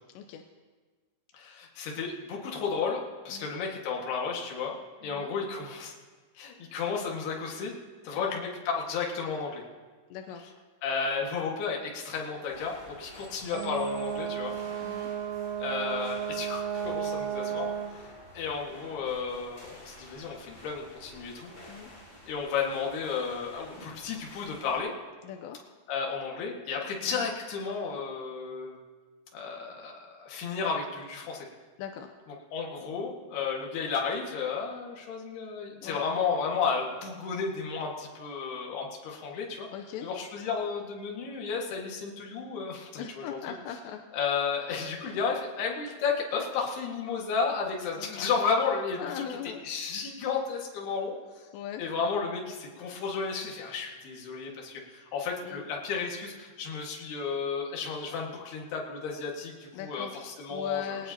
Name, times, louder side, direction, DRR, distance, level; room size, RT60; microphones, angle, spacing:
voice 1, 0.1-0.4 3.3-3.5 5.0-5.3 8.1-8.4 10.1-10.4 14.8-15.1 21.7-21.9 25.2-25.6 27.1-27.3 31.8-32.1 35.8-36.0 39.7-40.1 43.0-44.0 48.0-48.3 49.0-49.6 51.5-51.8 55.4-55.7 59.7-60.1 60.5-61.1, left 9 dB, 85° left, 4 dB, 2.7 m, -40 dB
voice 2, 1.3-4.7 5.0-5.9 6.3-7.7 8.0-9.6 10.8-14.5 15.6-17.7 18.3-21.5 22.3-24.9 25.9-28.8 29.3-31.5 32.5-39.7 40.0-43.4 44.1-49.2 49.6-51.5 51.8-61.0, left 5 dB, 65° left, -1 dB, 3.5 m, -33 dB
sound 1, 12.5-24.8, equal, 20° left, 6.6 m, -50 dB
Brass instrument, 13.5-18.0, right 8 dB, 75° right, 2.7 m, -33 dB
20.5 x 18.5 x 2.9 m, 1.4 s
omnidirectional pair, 5.5 m